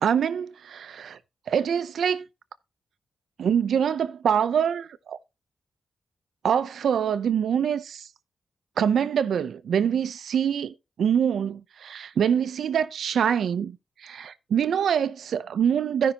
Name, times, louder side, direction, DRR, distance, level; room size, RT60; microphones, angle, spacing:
voice 1, 0.0-1.2 1.5-2.2 3.4-5.2 6.4-8.1 8.8-13.8 14.0-16.1, right 8 dB, 80° right, 0.7 m, -25 dB
15.5 x 5.7 x 2.9 m
cardioid pair, 90°, 0 cm